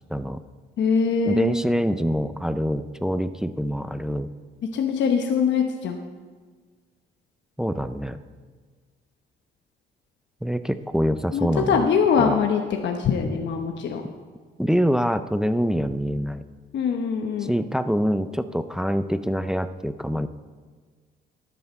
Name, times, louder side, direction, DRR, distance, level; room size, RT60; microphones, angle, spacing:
voice 1, 0.1-0.4 1.3-4.3 7.6-8.2 10.4-11.9 12.2-12.4 14.6-16.4 17.4-20.3, equal, 5° right, 11 dB, 0.5 m, -25 dB
voice 2, 0.8-1.6 4.7-6.0 11.3-14.0 16.7-17.5, left 6 dB, 65° left, 3 dB, 1.0 m, -23 dB
13.0 x 10.0 x 4.5 m, 1.5 s
cardioid pair, 90°, 20 cm